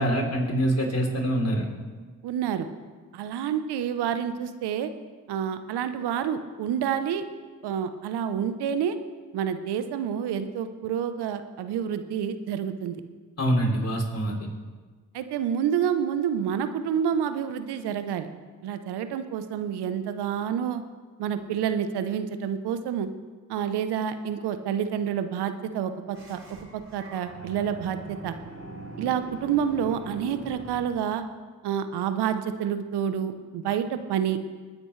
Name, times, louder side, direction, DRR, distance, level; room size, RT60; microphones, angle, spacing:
voice 1, 0.0-1.6 13.4-14.4, right 1 dB, 40° left, 0 dB, 3.6 m, -25 dB
voice 2, 2.2-2.7 3.1-4.9 5.3-7.2 7.6-9.0 9.3-13.0 15.1-18.3 18.6-20.8 21.2-23.1 23.5-26.4 26.7-28.3 29.0-31.2 31.6-34.4, right 8 dB, 75° right, 10 dB, 0.9 m, -28 dB
sound 1, 26.1-31.1, right 2 dB, 30° right, 4.9 m, -42 dB
22.5 x 9.7 x 3.3 m, 1.4 s
hypercardioid pair, 40°, 40 cm